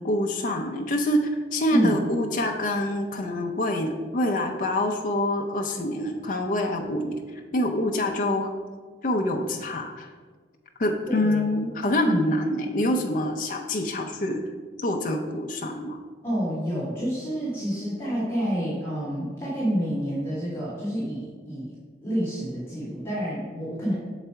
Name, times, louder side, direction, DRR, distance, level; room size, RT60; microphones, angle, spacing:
voice 1, 0.0-8.5 9.0-10.1 10.8-14.4 14.8-16.0, left 1 dB, 45° left, 2 dB, 0.5 m, -26 dB
voice 2, 11.0-11.4 12.0-12.2 16.2-21.7 22.0-23.9, equal, 15° left, -8 dB, 1.8 m, -28 dB
6.7 x 4.0 x 4.5 m, 1.5 s
head